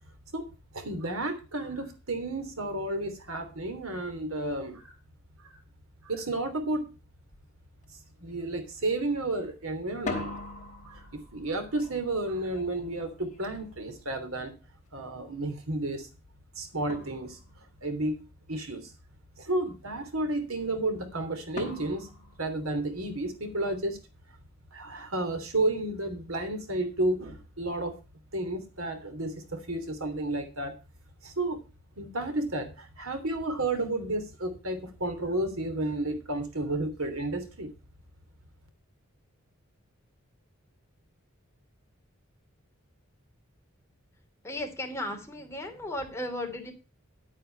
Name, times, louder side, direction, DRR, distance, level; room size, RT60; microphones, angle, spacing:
voice 1, 0.3-4.9 5.4-5.6 6.0-6.9 8.2-10.4 10.8-11.1 11.3-14.5 14.9-16.1 16.5-17.4 17.8-18.9 19.4-22.1 22.4-24.0 24.7-27.9 28.3-30.7 31.2-31.6 32.0-37.7, right 2 dB, 85° right, 8 dB, 3.1 m, -32 dB
sound 1, 7.3-7.5 7.8-8.4 9.9-14.7 16.3-16.4 16.9-17.8 21.6-23.3, left 2 dB, 35° left, 3.7 m, -42 dB
voice 2, 44.4-46.7, left 1 dB, 15° left, 2 dB, 3.0 m, -35 dB
11.5 x 9.1 x 4.6 m, 0.31 s
head